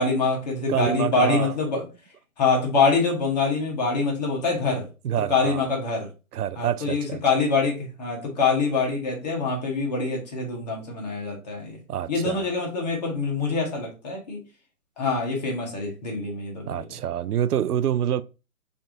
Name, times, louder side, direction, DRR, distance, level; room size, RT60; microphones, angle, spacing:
voice 1, 0.0-1.8 2.4-4.9 5.3-6.1 6.6-11.8 12.1-14.4 15.0-16.7, left 4 dB, 30° left, 1.1 m, -25 dB
voice 2, 0.7-1.5 5.0-5.7 6.3-7.2 11.9-12.5 16.7-18.2, right 10 dB, 85° right, 0.5 m, -26 dB
3.3 x 2.7 x 3.8 m
hypercardioid pair, 160°, 44 cm